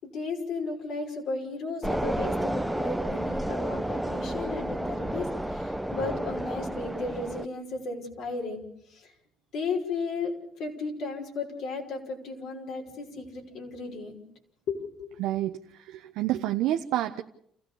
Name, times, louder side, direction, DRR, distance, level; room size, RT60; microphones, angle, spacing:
voice 1, 0.0-8.7 8.9-9.1 9.5-10.3 10.6-14.2 14.7-15.1, left 3 dB, 65° left, 1 dB, 5.5 m, -34 dB
sound 1, 1.8-7.5, right 1 dB, 5° right, 0.9 m, -31 dB
voice 2, 15.2-17.2, right 13 dB, 75° right, 6 dB, 0.8 m, -29 dB
29.0 x 15.5 x 7.0 m, 0.70 s
supercardioid pair, 85°, 0 cm